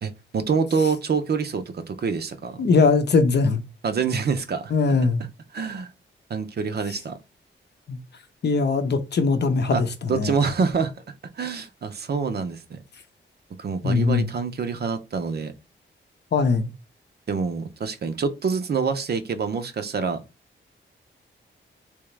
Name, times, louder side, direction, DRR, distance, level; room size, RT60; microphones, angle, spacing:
voice 1, 0.0-2.7 3.8-4.7 5.5-5.9 6.3-7.2 9.7-9.8 10.1-10.9 11.4-12.8 13.6-15.5 17.3-20.2, right 5 dB, 50° right, 0.6 m, -26 dB
voice 2, 2.6-3.6 4.7-5.2 7.9-8.0 8.4-10.3 13.8-14.3 16.3-16.7, left 4 dB, 55° left, 0.6 m, -21 dB
3.5 x 2.9 x 3.1 m
wide cardioid pair, 130°, 20 cm